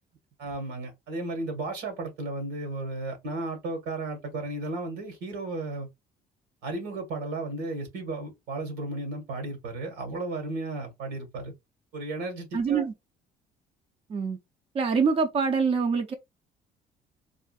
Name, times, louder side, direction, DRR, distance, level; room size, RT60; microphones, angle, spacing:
voice 1, 0.4-5.9 6.6-11.5 11.9-12.8, right 2 dB, 90° right, 1.6 m, -34 dB
voice 2, 12.5-12.9 14.1-14.4 14.7-16.1, right 5 dB, 35° right, 0.5 m, -25 dB
3.6 x 2.5 x 2.3 m
cardioid pair, 110°, 17 cm